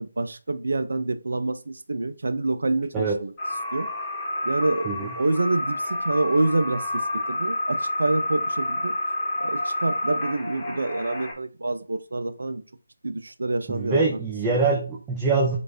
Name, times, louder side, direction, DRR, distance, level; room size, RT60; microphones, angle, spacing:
voice 1, 0.0-3.3 3.7-3.9 4.4-8.9 9.4-12.6 13.0-14.0 14.5-14.7, right 2 dB, 70° right, 11 dB, 0.6 m, -27 dB
sound 1, 3.4-11.3, left 1 dB, 15° left, 1.3 m, -29 dB
voice 2, 13.7-15.6, right 4 dB, 10° right, -3 dB, 0.7 m, -24 dB
4.0 x 3.2 x 3.5 m, 0.36 s
figure-of-eight pair, 155°, 0 cm